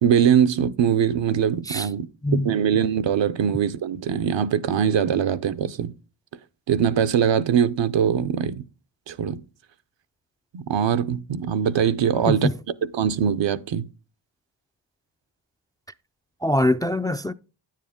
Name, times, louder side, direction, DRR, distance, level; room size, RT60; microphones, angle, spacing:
voice 1, 0.0-5.9 6.7-8.6 9.1-9.4 10.5-12.5 12.8-13.8, right 8 dB, 75° right, 0.7 m, -22 dB
voice 2, 16.4-17.3, left 1 dB, 10° left, 0.3 m, -23 dB
9.5 x 7.5 x 3.6 m
cardioid pair, 50°, 45 cm